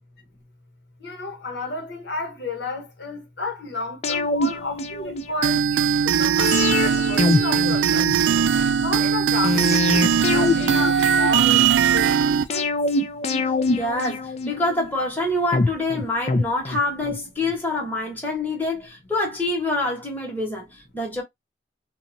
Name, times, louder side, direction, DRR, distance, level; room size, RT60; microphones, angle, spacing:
voice 1, 1.0-8.1 8.8-12.7, left 3 dB, 70° left, 1.0 m, -32 dB
sound 1, 4.0-5.6 6.4-8.5 9.4-11.7 12.5-14.9 15.5-17.2 17.5-17.6, left 3 dB, 35° left, 0.4 m, -25 dB
sound 2, 5.4-12.4, right 7 dB, 90° right, 0.3 m, -20 dB
voice 2, 13.7-21.2, left 2 dB, 10° left, 1.0 m, -26 dB
2.9 x 2.3 x 2.6 m
head